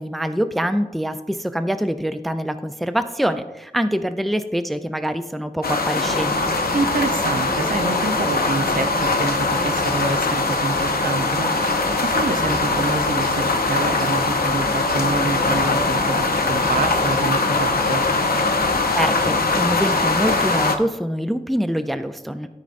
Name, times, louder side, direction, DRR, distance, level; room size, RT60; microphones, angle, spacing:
voice 1, 0.0-6.5 18.9-22.6, equal, ahead, 10 dB, 0.4 m, -25 dB
sound 1, 5.6-20.8, left 3 dB, 90° left, 0.6 m, -21 dB
sound 2, 6.0-20.5, right 1 dB, 80° right, 2.6 m, -32 dB
voice 2, 6.7-18.0, right 3 dB, 65° right, 7 dB, 0.7 m, -27 dB
12.5 x 5.2 x 2.5 m, 1.0 s
wide cardioid pair, 55°, 15 cm